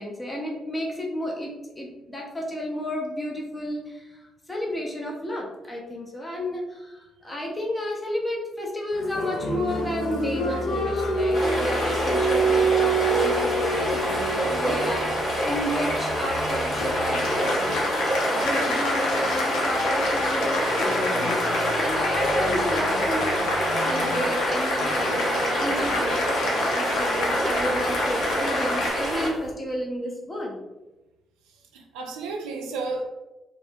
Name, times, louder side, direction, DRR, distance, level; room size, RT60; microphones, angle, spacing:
voice 1, 0.0-4.2 4.5-15.1 15.4-17.8 18.2-23.3 23.8-30.6, equal, 25° left, -2 dB, 0.7 m, -31 dB
Applause, 8.9-28.9, equal, 75° left, 0.5 m, -28 dB
sound 1, 11.3-29.5, equal, 50° left, 1.4 m, -27 dB
voice 2, 31.5-33.0, right 3 dB, 80° right, 2 dB, 0.3 m, -33 dB
2.9 x 2.0 x 2.7 m, 1.0 s
hypercardioid pair, 45°, 0 cm